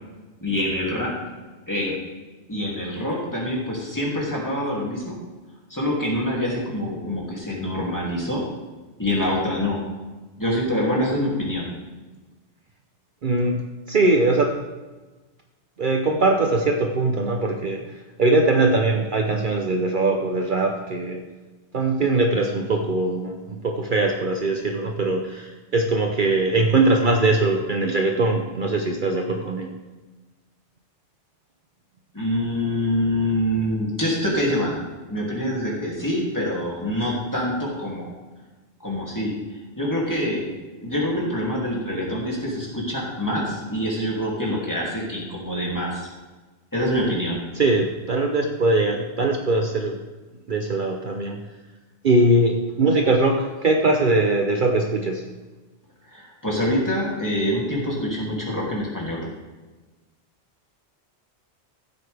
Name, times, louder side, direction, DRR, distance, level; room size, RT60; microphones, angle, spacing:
voice 1, 0.4-1.1 1.7-2.0 2.5-5.2 5.7-8.4 9.0-9.8 10.4-11.7 32.1-34.8 35.1-38.1 38.8-39.3 39.8-40.5 40.8-46.1 46.7-47.4 56.1-59.3, left 1 dB, 15° left, -4 dB, 2.7 m, -25 dB
voice 2, 13.2-13.6 13.9-14.6 15.8-17.8 18.2-21.2 21.7-29.7 47.6-50.0 50.5-51.4 52.0-55.2, right 2 dB, 50° right, 2 dB, 0.9 m, -21 dB
15.0 x 8.3 x 3.5 m, 1.2 s
omnidirectional pair, 1.1 m